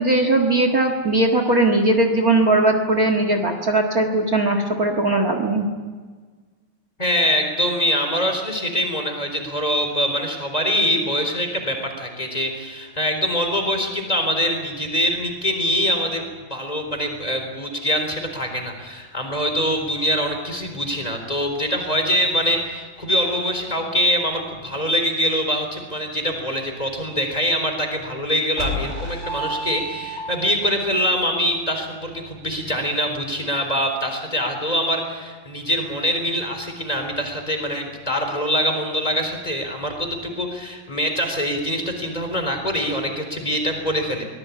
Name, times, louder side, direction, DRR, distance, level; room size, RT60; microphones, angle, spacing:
voice 1, 0.0-5.6, right 2 dB, 65° right, 5 dB, 0.8 m, -19 dB
voice 2, 7.0-16.2 16.5-44.2, equal, 10° left, 4 dB, 3.6 m, -24 dB
sound 1, 28.6-30.7, equal, 15° right, 4.5 m, -30 dB
24.0 x 19.5 x 8.6 m, 1.4 s
omnidirectional pair, 4.5 m